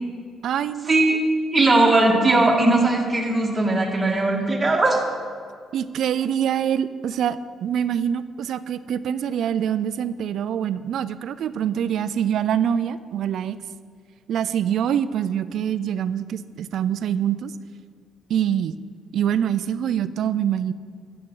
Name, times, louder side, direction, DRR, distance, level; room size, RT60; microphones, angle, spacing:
voice 1, 0.4-1.2 5.7-13.6 14.3-17.5 18.3-18.7 19.1-20.7, right 9 dB, 70° right, 14 dB, 0.3 m, -25 dB
voice 2, 1.5-5.0, right 2 dB, 20° right, -3 dB, 1.8 m, -19 dB
12.0 x 7.8 x 3.8 m, 2.1 s
cardioid pair, 90°, 0 cm